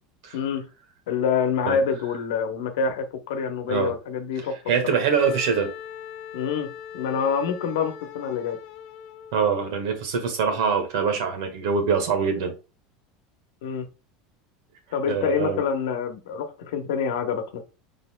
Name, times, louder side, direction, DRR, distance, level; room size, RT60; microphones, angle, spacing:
voice 1, 0.3-0.7 1.1-4.6 6.3-8.6 13.6-13.9 14.9-17.6, left 6 dB, 90° left, 1.0 m, -26 dB
voice 2, 4.7-5.7 9.3-12.5 15.1-15.6, right 6 dB, 80° right, 1.5 m, -24 dB
Wind instrument woodwind instrument, 5.1-9.7, left 9 dB, 50° left, 0.9 m, -40 dB
5.2 x 4.1 x 2.2 m
supercardioid pair, 145°, 2 cm